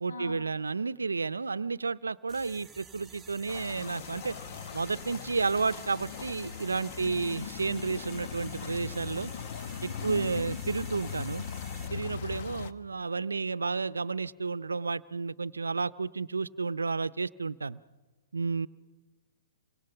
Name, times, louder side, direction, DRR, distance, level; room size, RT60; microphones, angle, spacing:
voice 1, 0.0-4.4 4.7-9.3 9.8-11.4 11.9-17.8 18.3-18.7, right 4 dB, 85° right, 17 dB, 0.6 m, -31 dB
sound 1, 2.3-11.9, right 5 dB, 5° right, 2.2 m, -51 dB
sound 2, 3.5-12.7, left 8 dB, 50° left, 1.1 m, -40 dB
voice 2, 7.0-7.5 9.8-10.5, left 2 dB, 80° left, 3 dB, 7.4 m, -42 dB
28.0 x 25.0 x 5.8 m, 1.3 s
hypercardioid pair, 120°, 0 cm